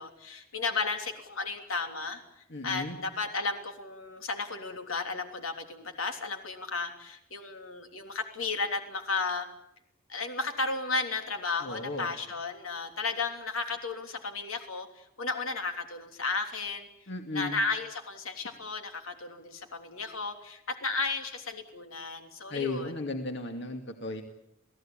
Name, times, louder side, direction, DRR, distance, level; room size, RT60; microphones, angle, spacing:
voice 1, 0.0-2.2 2.6-9.5 10.1-16.9 17.3-23.0, left 4 dB, 85° left, 5 dB, 3.3 m, -34 dB
voice 2, 2.5-3.0 11.6-12.1 17.1-17.6 22.5-24.2, left 2 dB, 60° left, 5 dB, 2.3 m, -35 dB
28.5 x 17.0 x 8.9 m, 0.82 s
head